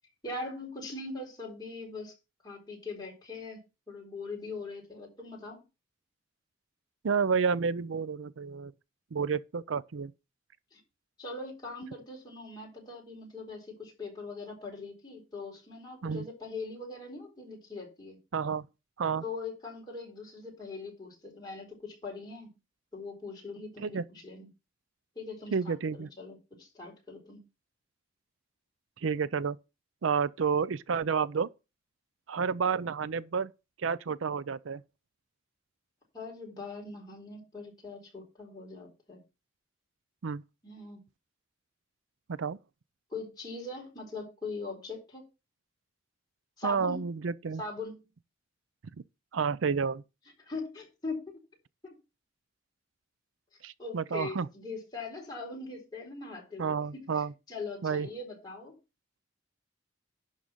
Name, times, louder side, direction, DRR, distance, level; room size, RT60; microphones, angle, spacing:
voice 1, 0.2-2.1 2.4-3.6 3.9-5.6 10.7-10.8 11.2-18.2 19.2-22.5 22.9-24.5 25.2-27.4 36.1-39.2 40.6-41.0 43.1-45.2 46.6-47.0 47.6-48.0 50.4-51.4 51.8-52.0 53.8-58.7, left 3 dB, 20° left, 4.1 m, -41 dB
voice 2, 7.0-8.7 9.1-10.1 16.0-16.3 18.3-18.6 19.0-19.2 23.8-24.0 25.5-26.1 29.0-29.6 30.0-31.5 32.3-33.5 33.8-34.8 40.2-40.4 42.3-42.6 46.6-47.6 49.3-50.0 53.6-54.5 56.6-57.3 57.8-58.1, right 6 dB, 90° right, 0.5 m, -30 dB
11.5 x 3.9 x 7.2 m
head